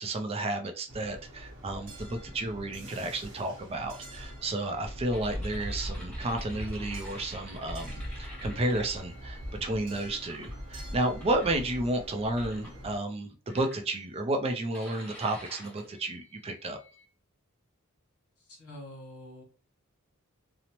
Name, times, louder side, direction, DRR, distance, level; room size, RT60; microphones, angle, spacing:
voice 1, 0.0-16.8, right 2 dB, 25° right, 5 dB, 0.4 m, -32 dB
sound 1, 0.9-13.0, equal, 55° right, 0.9 m, -41 dB
sound 2, 5.1-9.7 10.2-10.6 11.2-11.9 12.4-12.8 13.5-14.2 14.7-17.1, equal, 5° left, 0.8 m, -50 dB
voice 2, 18.4-19.4, left 1 dB, 90° left, 0 dB, 1.2 m, -46 dB
2.8 x 2.0 x 2.9 m, 0.35 s
head